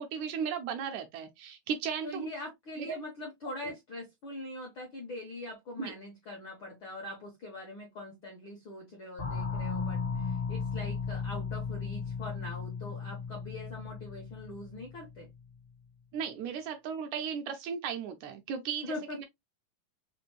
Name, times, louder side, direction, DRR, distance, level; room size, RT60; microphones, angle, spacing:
voice 1, 0.0-2.3 2.8-3.0 3.6-3.7 5.8-5.9 16.1-19.3, right 7 dB, 80° right, 1.8 m, -36 dB
voice 2, 2.0-15.3 18.8-19.2, left 1 dB, 70° left, 1.2 m, -42 dB
sound 1, 9.2-15.5, left 5 dB, 45° left, 0.8 m, -36 dB
5.0 x 2.6 x 2.9 m
omnidirectional pair, 3.8 m